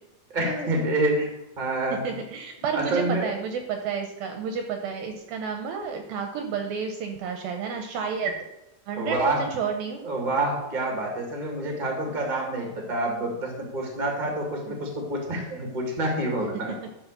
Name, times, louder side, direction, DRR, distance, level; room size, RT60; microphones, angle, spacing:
voice 1, 0.3-1.3 1.6-2.0 2.7-3.3 9.0-9.4 10.0-16.7, right 2 dB, 30° right, 0 dB, 0.9 m, -27 dB
voice 2, 2.0-8.4 8.9-10.0 14.7-14.8, right 6 dB, 75° right, 4 dB, 2.3 m, -31 dB
12.0 x 4.3 x 6.7 m, 0.94 s
omnidirectional pair, 4.9 m